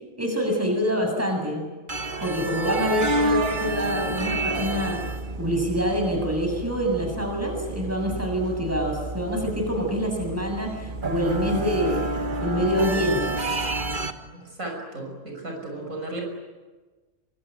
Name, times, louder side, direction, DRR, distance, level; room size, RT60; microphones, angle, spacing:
voice 1, 0.2-1.7 2.2-5.0 5.4-12.0 12.4-13.3, equal, 10° right, 2 dB, 7.4 m, -26 dB
sound 1, 1.9-14.1, right 2 dB, 35° right, 1.7 m, -29 dB
voice 2, 14.3-16.2, right 2 dB, 75° right, 1 dB, 6.7 m, -35 dB
25.5 x 23.5 x 9.2 m, 1.3 s
omnidirectional pair, 1.4 m